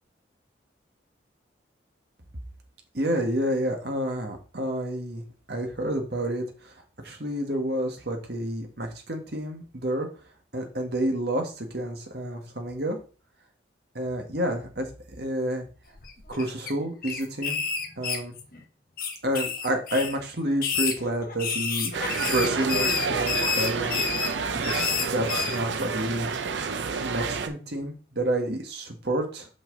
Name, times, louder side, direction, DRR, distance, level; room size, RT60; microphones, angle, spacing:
voice 1, 2.9-6.7 7.0-10.1 10.5-13.0 13.9-14.9 15.2-15.6 16.3-17.6 18.0-18.3 19.2-21.9 22.2-24.0 24.6-26.3 27.0-29.5, right 1 dB, 60° right, 2 dB, 1.6 m, -29 dB
sound 1, 16.0-16.7 17.0-18.6 19.0-20.2 20.5-25.6, left 6 dB, 50° left, 1.2 m, -29 dB
sound 2, 21.9-27.5, right 5 dB, 80° right, 0.7 m, -29 dB
5.9 x 5.9 x 4.0 m, 0.36 s
head